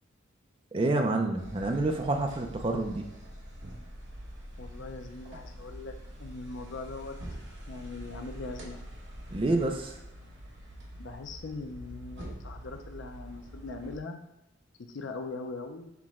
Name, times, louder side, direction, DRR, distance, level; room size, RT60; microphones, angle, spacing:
voice 1, 0.7-3.1 3.6-3.8 9.3-10.0, right 2 dB, 25° right, 3 dB, 0.4 m, -28 dB
sound 1, 1.4-14.0, equal, 65° right, 1.0 m, -45 dB
voice 2, 4.6-7.1 7.7-8.8 11.0-14.2 14.9-15.9, left 3 dB, 70° left, 5 dB, 0.5 m, -41 dB
5.9 x 2.2 x 3.6 m, 0.90 s
head